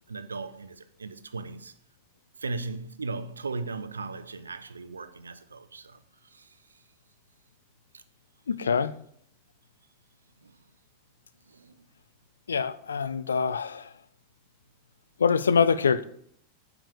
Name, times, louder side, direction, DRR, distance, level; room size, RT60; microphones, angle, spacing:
voice 1, 0.1-1.7 2.4-6.6 7.9-8.0 10.4-10.6 11.5-11.9, right 3 dB, 75° right, 0.6 m, -37 dB
voice 2, 8.5-8.9 12.5-13.9 15.2-16.0, left 6 dB, 70° left, 0.5 m, -24 dB
8.9 x 4.9 x 6.6 m
figure-of-eight pair, 90°, 0 cm